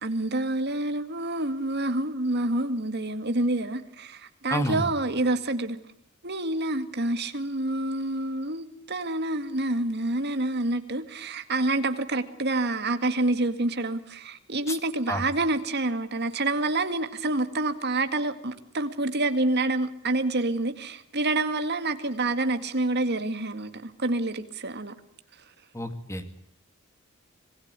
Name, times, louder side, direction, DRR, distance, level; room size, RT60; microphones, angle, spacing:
voice 1, 0.0-5.8 6.2-24.9, right 2 dB, 50° right, 9 dB, 2.1 m, -27 dB
voice 2, 4.5-4.8 14.7-14.8 15.1-15.2 25.7-26.4, equal, 15° left, 9 dB, 2.3 m, -29 dB
26.0 x 20.0 x 8.2 m, 0.66 s
head